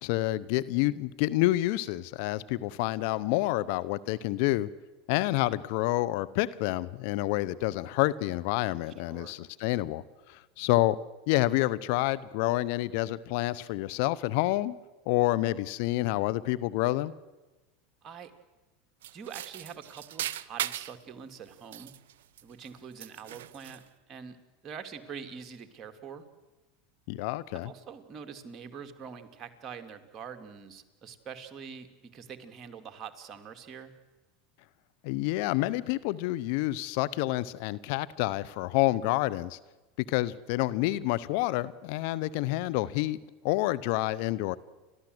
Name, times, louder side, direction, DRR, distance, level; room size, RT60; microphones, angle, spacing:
voice 1, 0.0-4.7 5.1-11.0 11.3-14.7 15.1-17.1 27.1-27.7 35.0-39.6 40.1-43.2 43.4-44.6, left 17 dB, 65° left, 17 dB, 0.8 m, -28 dB
voice 2, 9.0-9.4 18.0-18.3 19.1-22.0 22.4-24.4 24.6-26.3 27.6-33.9, right 7 dB, 35° right, 6 dB, 2.4 m, -45 dB
sound 1, 19.0-21.0 21.5-22.7 23.0-23.9, right 12 dB, 80° right, 0.7 m, -38 dB
30.0 x 13.0 x 7.9 m, 1.2 s
hypercardioid pair, 100°, 0 cm